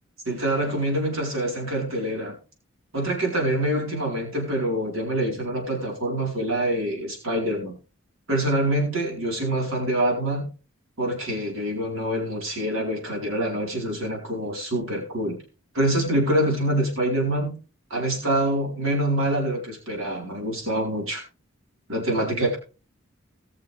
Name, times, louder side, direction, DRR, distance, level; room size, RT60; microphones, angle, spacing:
voice 1, 0.3-2.4 2.9-7.8 8.3-10.5 11.0-15.4 15.7-17.6 17.9-21.2 21.9-22.6, right 1 dB, 80° right, 0 dB, 4.4 m, -25 dB
19.5 x 6.6 x 3.4 m, 0.34 s
head